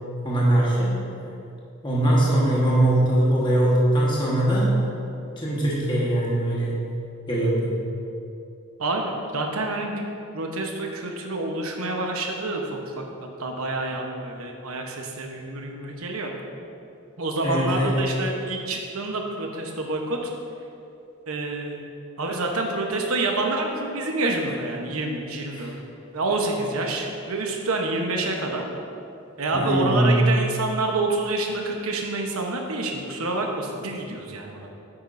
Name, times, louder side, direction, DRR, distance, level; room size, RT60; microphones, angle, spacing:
voice 1, 0.2-1.0 1.8-4.8 5.4-6.8 7.3-7.8 17.4-17.9 25.5-25.7 29.5-30.2, right 1 dB, 20° left, -6 dB, 1.3 m, -21 dB
voice 2, 8.8-10.0 10.3-13.0 13.4-16.3 17.2-20.3 21.3-21.8 22.2-25.7 26.1-28.7 29.4-34.7, right 2 dB, 85° right, 2 dB, 1.0 m, -27 dB
9.0 x 8.7 x 2.6 m, 2.7 s
head